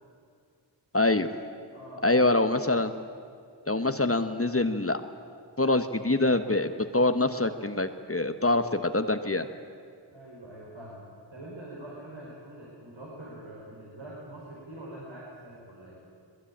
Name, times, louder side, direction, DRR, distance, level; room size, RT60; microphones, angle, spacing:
voice 1, 0.9-1.3 2.0-2.9 3.7-5.0 5.6-9.5, left 2 dB, 30° left, 8 dB, 1.2 m, -25 dB
voice 2, 1.7-2.0 3.7-3.9 6.7-6.9 10.1-16.0, right 1 dB, 75° right, -6 dB, 5.6 m, -44 dB
22.0 x 20.5 x 8.7 m, 2.3 s
wide cardioid pair, 45°, 47 cm